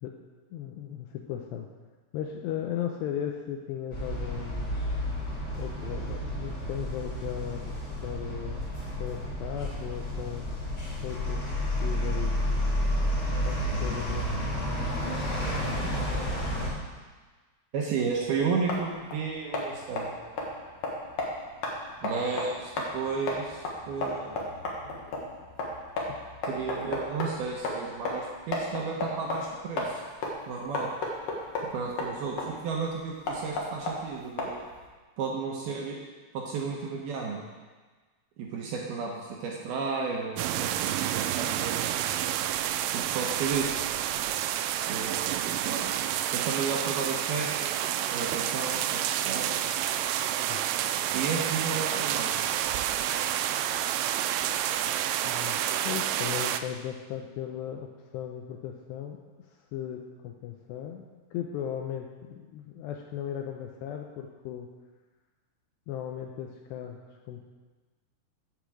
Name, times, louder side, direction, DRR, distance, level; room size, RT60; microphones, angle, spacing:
voice 1, 0.5-1.7 2.1-4.8 5.6-7.7 8.0-8.7 9.0-10.5 11.0-11.5 11.8-12.4 13.3-14.3 25.1-25.2 26.1-26.2 50.5-50.6 55.2-55.6 55.8-59.2 59.7-64.7 65.9-67.0 67.3-67.4, left 9 dB, 85° left, 2 dB, 2.5 m, -36 dB
sound 1, 3.9-16.7, equal, 30° left, 2.9 m, -31 dB
voice 2, 17.7-20.2 22.0-24.5 24.8-24.9 26.4-30.0 30.5-30.9 31.6-34.6 35.2-36.0 36.3-37.4 38.4-41.8 42.9-43.8 44.9-46.0 46.3-47.8 48.1-49.6 51.1-52.4, right 5 dB, 70° right, -2 dB, 2.5 m, -33 dB
sound 2, 18.1-34.9, left 2 dB, 65° left, 1.6 m, -35 dB
sound 3, 40.4-56.6, right 11 dB, 90° right, 3.1 m, -29 dB
8.3 x 8.2 x 7.6 m, 1.3 s
omnidirectional pair, 5.5 m